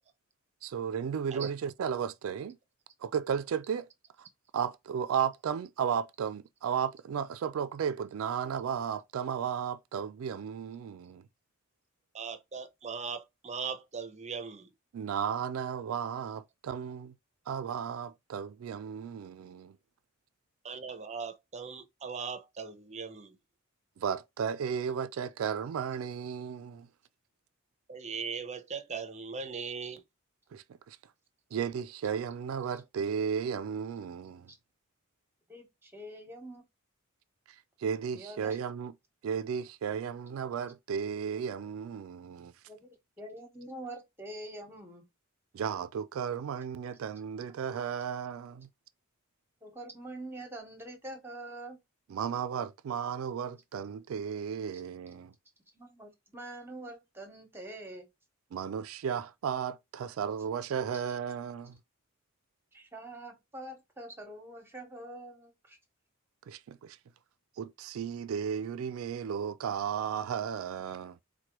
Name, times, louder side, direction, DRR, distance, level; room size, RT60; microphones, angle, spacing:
voice 1, 0.6-2.6 3.0-3.9 4.2-4.3 4.5-11.3 14.9-17.1 17.5-19.8 24.0-26.9 30.5-31.0 31.5-34.5 37.5-38.9 39.2-42.5 45.5-48.7 52.1-55.3 58.5-61.8 66.5-67.0 67.6-71.2, right 7 dB, 80° right, 0.3 m, -34 dB
voice 2, 12.1-14.7 20.6-23.4 27.9-30.0, right 5 dB, 35° right, 0.6 m, -39 dB
voice 3, 35.5-36.6 38.1-38.6 42.7-42.9 43.2-45.0 49.6-51.8 55.7-58.1 62.7-65.8, right 1 dB, 10° right, 1.0 m, -45 dB
4.4 x 2.2 x 2.9 m
head